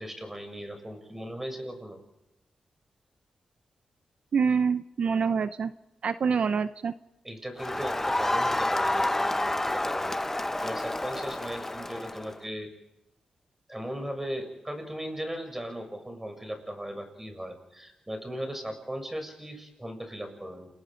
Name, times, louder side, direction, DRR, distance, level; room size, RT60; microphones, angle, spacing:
voice 1, 0.0-2.0 7.2-10.2 10.6-12.7 13.7-20.7, equal, 15° right, 6 dB, 7.3 m, -37 dB
voice 2, 4.3-5.7 6.0-6.9, right 6 dB, 65° right, 12 dB, 0.7 m, -26 dB
Crowd, 7.6-12.4, left 1 dB, 15° left, 0.7 m, -29 dB
29.5 x 20.5 x 5.2 m, 0.93 s
cardioid pair, 70°, 2 cm